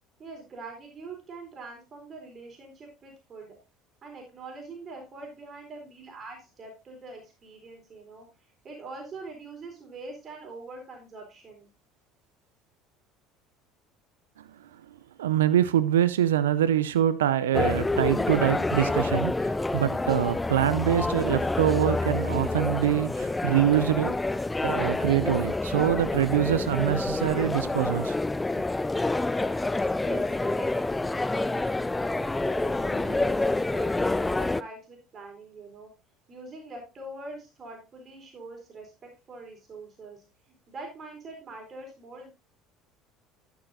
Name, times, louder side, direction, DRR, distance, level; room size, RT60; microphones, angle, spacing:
voice 1, 0.2-3.6 4.0-8.3 8.6-11.7 29.9-30.6 32.4-35.9 36.3-40.2 40.7-42.3, right 3 dB, 40° right, 4.1 m, -43 dB
voice 2, 15.2-24.2 24.6-28.2, right 11 dB, 80° right, 0.5 m, -25 dB
sound 1, 17.5-34.6, left 2 dB, 15° left, 0.4 m, -27 dB
12.0 x 8.7 x 2.7 m
hypercardioid pair, 65°, 0 cm